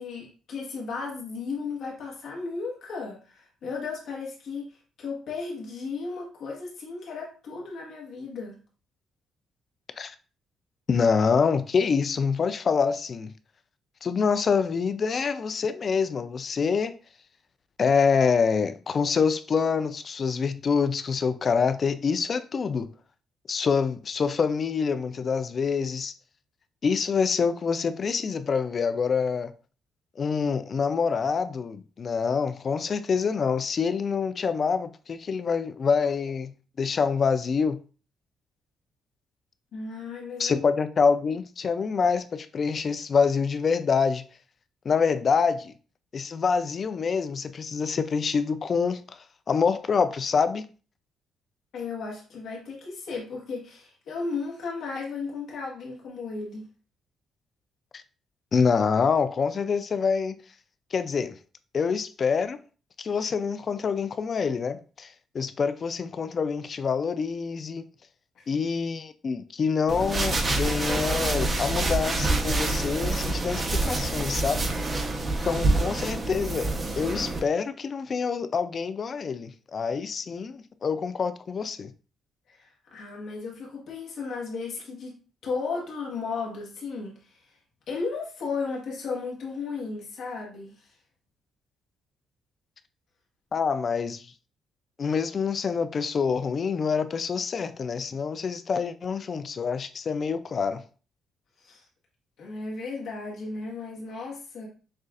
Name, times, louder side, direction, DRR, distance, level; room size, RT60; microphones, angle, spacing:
voice 1, 0.0-4.6 5.0-8.6 39.7-40.6 51.7-56.6 68.3-68.5 82.5-87.4 87.9-90.9 101.6-101.8 102.4-104.7, left 4 dB, 75° left, 1.3 m, -35 dB
voice 2, 10.9-13.3 14.0-16.9 17.8-22.9 23.5-26.1 26.8-29.5 30.2-37.8 40.4-44.2 44.9-45.7 46.1-49.2 49.5-50.6 57.9-58.0 58.5-60.3 60.9-61.3 61.7-62.6 63.0-67.9 68.5-74.7 75.4-81.9 93.5-94.3 95.0-100.8, left 5 dB, 45° left, 0.4 m, -26 dB
sound 1, 69.9-77.4, right 2 dB, 30° right, 0.9 m, -27 dB
6.5 x 2.4 x 2.4 m
cardioid pair, 90°, 0 cm